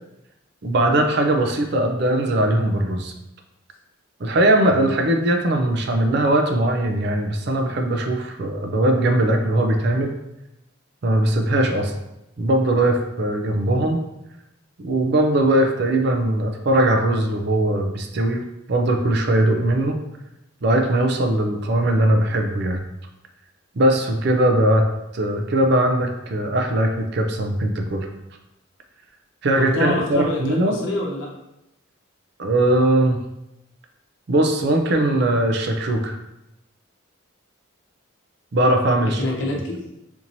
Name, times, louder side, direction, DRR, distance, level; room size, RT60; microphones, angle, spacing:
voice 1, 0.6-3.1 4.2-10.1 11.0-11.9 12.4-14.0 14.8-18.4 18.7-20.0 20.6-22.8 23.7-24.8 25.1-28.1 29.4-30.8 32.4-33.2 34.3-36.2 38.5-39.2 39.5-39.6, right 1 dB, 55° right, 4 dB, 0.4 m, -20 dB
voice 2, 29.6-31.3 39.0-39.9, left 2 dB, 65° left, -2 dB, 0.8 m, -26 dB
4.4 x 2.8 x 2.6 m, 0.89 s
head